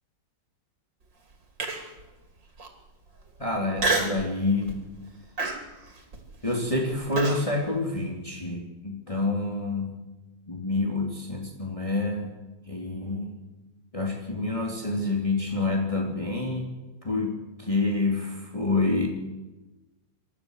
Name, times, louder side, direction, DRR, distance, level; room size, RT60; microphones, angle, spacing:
Human voice, 1.6-2.0 2.6-2.7 3.8-4.3 4.7-5.0 5.4-7.4, right 3 dB, 80° right, 3.8 m, -28 dB
voice 1, 3.4-4.7 6.4-10.0 10.5-12.3 12.7-13.3 13.9-16.7 17.0-17.3 17.6-19.1, left 2 dB, 20° left, 0 dB, 2.8 m, -27 dB
28.0 x 13.0 x 8.0 m, 1.1 s
omnidirectional pair, 1.9 m